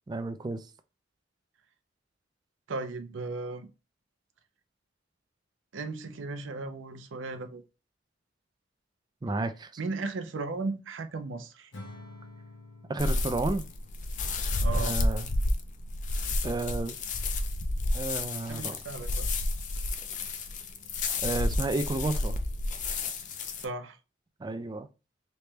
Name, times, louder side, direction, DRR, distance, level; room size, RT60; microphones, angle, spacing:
voice 1, 0.1-0.6 9.2-9.7 12.9-13.7 14.7-15.4 16.4-17.0 17.9-18.8 21.2-22.3 24.4-24.9, right 2 dB, 20° right, 0.3 m, -31 dB
voice 2, 2.7-3.7 5.7-7.6 9.8-11.7 14.6-15.0 18.5-19.3 23.6-24.0, right 3 dB, 80° right, 0.6 m, -36 dB
Acoustic guitar / Strum, 11.7-15.1, left 2 dB, 70° left, 0.9 m, -49 dB
sound 1, 13.0-23.6, left 2 dB, 40° left, 0.4 m, -30 dB
3.3 x 3.0 x 3.2 m
head